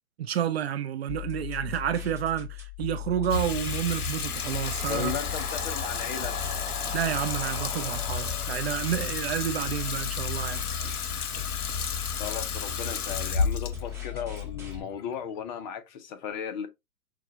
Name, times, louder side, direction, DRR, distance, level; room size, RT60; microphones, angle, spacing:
voice 1, 0.2-5.2 6.9-10.6, right 10 dB, 45° right, 0.5 m, -30 dB
sound 1, 1.1-14.8, left 14 dB, 5° right, 1.3 m, -38 dB
sound 2, 3.1-9.2, left 2 dB, 15° left, 1.6 m, -41 dB
Water tap faucet / Sink (filling or washing), 3.3-15.6, left 5 dB, 85° left, 0.8 m, -32 dB
voice 2, 4.9-6.4 12.2-16.7, left 8 dB, 30° left, 0.6 m, -35 dB
6.1 x 2.3 x 2.5 m
hypercardioid pair, 125°, 44 cm